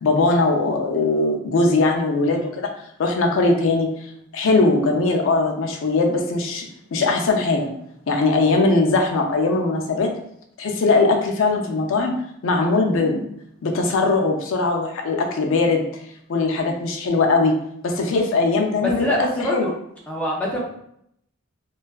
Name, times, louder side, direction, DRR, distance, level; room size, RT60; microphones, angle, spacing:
voice 1, 0.0-2.7 3.0-3.9 4.3-7.7 8.1-10.1 10.6-12.2 12.4-13.2 13.6-15.8 16.3-17.6 17.8-19.7, left 3 dB, 65° left, 2 dB, 0.4 m, -20 dB
voice 2, 18.8-19.7 20.1-20.6, equal, 5° left, -4 dB, 0.4 m, -24 dB
2.5 x 2.3 x 2.2 m, 0.73 s
head